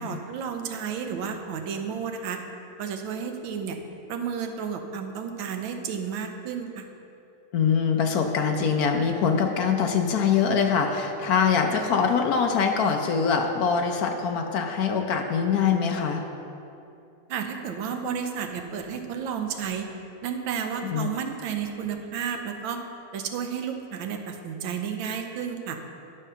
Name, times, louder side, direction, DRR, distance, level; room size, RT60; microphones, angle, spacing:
voice 1, 0.0-2.4 2.8-3.8 4.1-6.9 17.3-19.9 20.2-22.8 23.1-25.8, right 7 dB, 75° right, 5 dB, 1.5 m, -32 dB
voice 2, 7.5-16.2 20.8-21.1, left 6 dB, 75° left, 4 dB, 0.8 m, -23 dB
11.0 x 5.5 x 5.6 m, 2.8 s
omnidirectional pair, 2.3 m